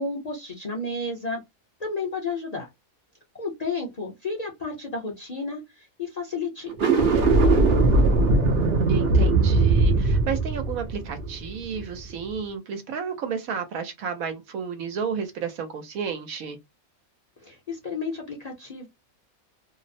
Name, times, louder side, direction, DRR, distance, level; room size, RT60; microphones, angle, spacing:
voice 1, 0.0-1.4 1.8-2.7 3.4-7.5 17.4-18.9, left 3 dB, 40° left, 0.6 m, -32 dB
sound 1, 6.7-12.0, right 3 dB, 55° right, 0.7 m, -20 dB
voice 2, 8.9-16.6, right 6 dB, 80° right, 1.1 m, -32 dB
2.7 x 2.0 x 2.5 m
omnidirectional pair, 1.5 m